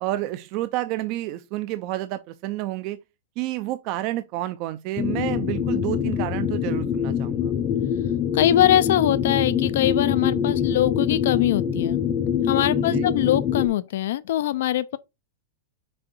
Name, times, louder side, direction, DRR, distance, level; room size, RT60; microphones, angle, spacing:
voice 1, 0.0-3.0 3.4-7.5 12.7-13.1, right 15 dB, 40° right, 0.5 m, -29 dB
sound 1, 5.0-13.7, left 8 dB, 25° left, 0.7 m, -24 dB
voice 2, 8.3-12.0 12.4-15.0, left 12 dB, 70° left, 0.5 m, -22 dB
6.3 x 3.6 x 4.4 m
supercardioid pair, 150°, 0 cm